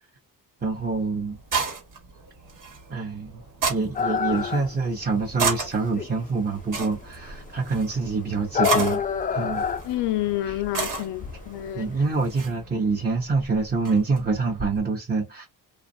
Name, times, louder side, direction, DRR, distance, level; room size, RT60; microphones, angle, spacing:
voice 1, 0.6-1.4 2.9-3.4 3.7-9.0 9.3-9.6 10.5-10.6 11.7-15.5, right 4 dB, 20° right, 0.8 m, -26 dB
sound 1, 0.6-14.8, right 4 dB, 50° right, 1.2 m, -34 dB
sound 2, 3.9-12.5, left 6 dB, 20° left, 0.3 m, -29 dB
voice 2, 9.8-11.9, left 14 dB, 75° left, 0.6 m, -28 dB
2.3 x 2.0 x 2.6 m
cardioid pair, 65°, 42 cm